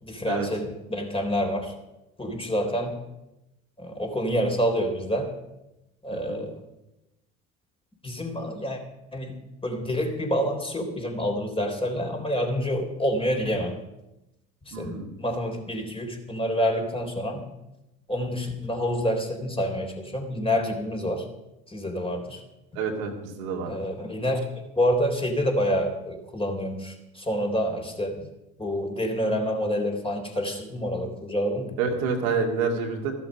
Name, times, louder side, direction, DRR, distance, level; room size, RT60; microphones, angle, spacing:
voice 1, 0.0-1.7 2.2-3.0 3.8-5.3 6.0-6.6 8.0-8.8 9.1-9.4 9.6-13.8 14.7-17.4 18.1-21.3 21.7-22.4 23.7-24.5 24.8-28.3 28.6-31.8, equal, 15° left, 3 dB, 3.7 m, -27 dB
voice 2, 14.7-15.1 22.8-23.7 31.8-33.1, right 5 dB, 70° right, 1 dB, 2.3 m, -28 dB
14.5 x 11.5 x 5.2 m, 0.95 s
figure-of-eight pair, 60°, 43 cm